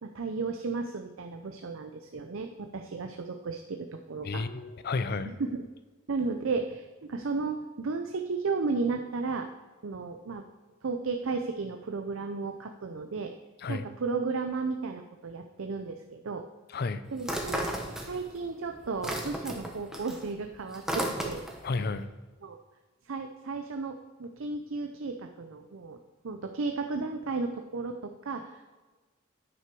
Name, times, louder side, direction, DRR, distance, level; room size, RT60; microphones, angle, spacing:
voice 1, 0.0-4.4 5.3-5.6 6.1-9.5 9.8-10.5 10.8-13.3 13.7-16.4 17.1-17.6 17.9-21.4 21.8-21.9 22.4-22.6 23.0-26.0 26.2-28.6, right 4 dB, 70° right, 5 dB, 0.6 m, -34 dB
voice 2, 4.2-5.3 13.6-13.8 16.7-17.0 21.6-22.1, left 3 dB, 50° left, 12 dB, 0.5 m, -31 dB
sound 1, 17.2-18.4 18.7-21.7, right 1 dB, 5° right, 1.0 m, -34 dB
9.5 x 5.8 x 4.6 m, 1.3 s
head